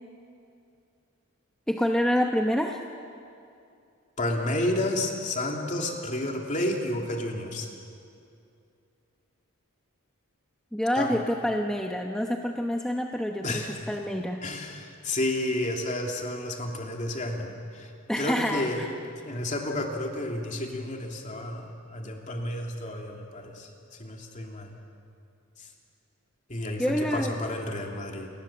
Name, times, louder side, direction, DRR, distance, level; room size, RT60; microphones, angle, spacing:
voice 1, 1.7-2.8 10.7-14.4 18.1-18.9 26.8-27.3, equal, 5° left, 2 dB, 0.9 m, -27 dB
voice 2, 4.2-7.7 11.0-11.1 13.4-13.8 14.4-17.9 18.2-18.8 19.2-23.7 24.0-24.7 25.6-25.7 26.5-26.9 27.1-28.3, left 1 dB, 35° left, 1 dB, 2.9 m, -31 dB
29.0 x 20.5 x 7.4 m, 2.5 s
head